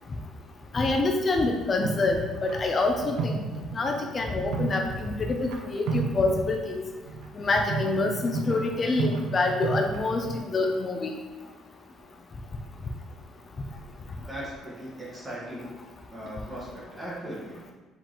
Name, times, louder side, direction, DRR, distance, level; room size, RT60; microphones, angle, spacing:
voice 1, 0.7-3.4 3.7-6.8 7.4-11.1, left 3 dB, 25° left, 3 dB, 0.4 m, -26 dB
sound 1, 1.8-5.6 5.9-10.4, right 4 dB, 85° right, 0.7 m, -33 dB
voice 2, 14.2-15.8 16.1-17.7, right 1 dB, 10° right, -7 dB, 1.3 m, -39 dB
4.9 x 3.6 x 2.9 m, 1.2 s
cardioid pair, 175°, 0 cm